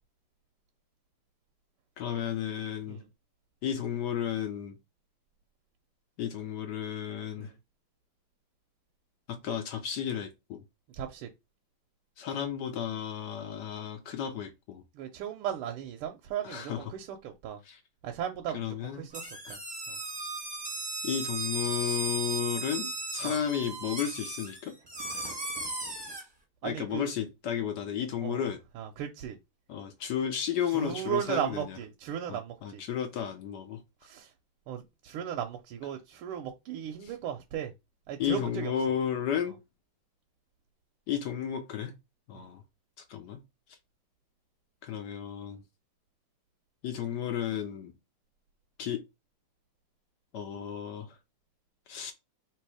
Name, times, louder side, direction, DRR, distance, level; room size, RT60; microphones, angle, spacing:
voice 1, 2.0-3.0 3.6-4.8 6.2-7.5 9.3-10.6 12.2-14.8 16.4-16.9 17.6-17.8 18.5-19.1 19.4-19.6 21.0-24.7 26.6-28.6 29.7-31.8 32.3-33.8 37.0-37.1 38.2-39.6 41.1-41.9 42.3-42.6 43.1-43.4 44.8-45.6 46.8-47.9 48.8-49.0 50.3-51.1 51.9-52.1, left 9 dB, 75° left, 1.0 m, -33 dB
voice 2, 11.0-11.3 15.0-17.6 18.0-19.2 19.5-19.6 19.9-20.0 23.2-23.4 26.6-27.1 28.2-28.5 28.8-29.4 30.7-32.8 34.0-34.3 34.7-37.7 38.1-38.7 42.3-42.5, right 10 dB, 85° right, 1.5 m, -36 dB
sound 1, 19.1-26.2, right 2 dB, 15° right, 1.0 m, -36 dB
3.4 x 3.0 x 4.7 m
omnidirectional pair, 2.4 m